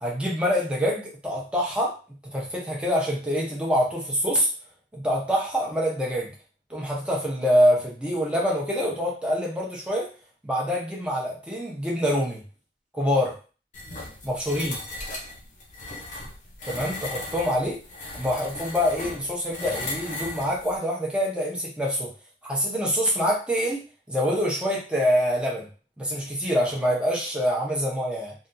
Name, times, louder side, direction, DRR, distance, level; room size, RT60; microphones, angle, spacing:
voice 1, 0.0-1.9 2.3-4.5 4.9-6.3 6.7-10.1 10.4-12.4 12.9-13.3 14.2-14.8 16.7-17.8 18.1-22.1 22.4-23.8 24.1-25.7 26.0-28.3, equal, 5° right, -4 dB, 0.9 m, -25 dB
sound 1, 13.7-20.8, left 2 dB, 40° left, 0.8 m, -37 dB
3.4 x 2.5 x 2.6 m, 0.35 s
head